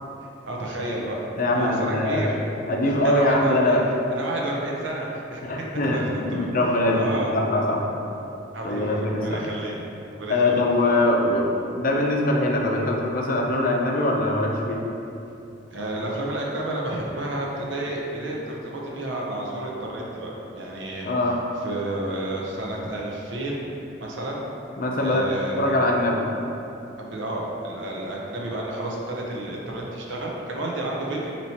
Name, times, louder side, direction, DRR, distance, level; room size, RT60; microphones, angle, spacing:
voice 1, 0.4-1.2 1.5-2.3 2.8-3.8 4.1-5.4 5.9-6.5 6.9-7.3 8.5-9.8 10.1-10.5 15.7-21.1 21.6-23.7 24.0-24.4 25.0-25.8 27.0-31.4, right 1 dB, 80° right, -2 dB, 0.8 m, -30 dB
voice 2, 1.4-2.3 2.7-3.8 5.4-7.9 8.6-9.4 10.3-11.5 11.8-14.8 21.0-21.4 24.8-25.3 25.6-26.2, left 1 dB, 50° left, 0 dB, 0.5 m, -22 dB
4.2 x 3.0 x 4.2 m, 2.8 s
head